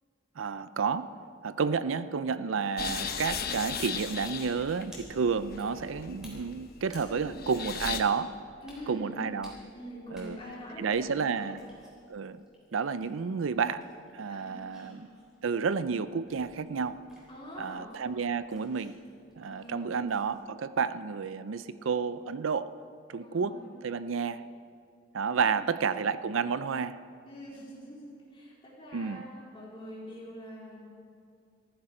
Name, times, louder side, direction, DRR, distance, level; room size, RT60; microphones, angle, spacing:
voice 1, 0.4-1.1 1.4-8.4 8.9-9.5 10.1-10.4 10.8-11.6 12.1-12.4 12.7-13.8 14.1-15.1 15.4-17.0 17.6-19.0 19.4-22.7 23.1-24.4 25.1-27.0 28.9-29.3, right 5 dB, 80° right, 14 dB, 0.5 m, -31 dB
sound 1, 2.8-8.0, left 6 dB, 50° left, 0.9 m, -37 dB
sound 2, 2.9-20.4, left 1 dB, 5° right, 4.0 m, -58 dB
voice 2, 7.0-7.3 8.6-9.3 9.7-11.6 14.3-15.0 17.3-17.9 19.4-20.1 23.2-23.7 25.3-25.7 27.2-29.3 29.5-30.9, equal, 25° left, -6 dB, 4.1 m, -45 dB
15.0 x 14.0 x 5.0 m, 2.3 s
head